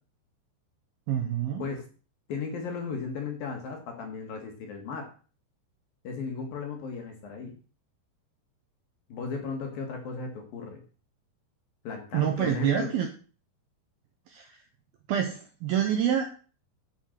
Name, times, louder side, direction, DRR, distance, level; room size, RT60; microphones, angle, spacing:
voice 1, 1.1-1.6 12.1-13.1 14.3-14.6 15.1-16.3, right 9 dB, 75° right, 4 dB, 2.3 m, -27 dB
voice 2, 2.3-5.1 6.0-7.6 9.1-10.8 11.8-12.9, left 5 dB, 60° left, 4 dB, 3.0 m, -35 dB
10.0 x 7.3 x 6.6 m, 0.38 s
omnidirectional pair, 5.6 m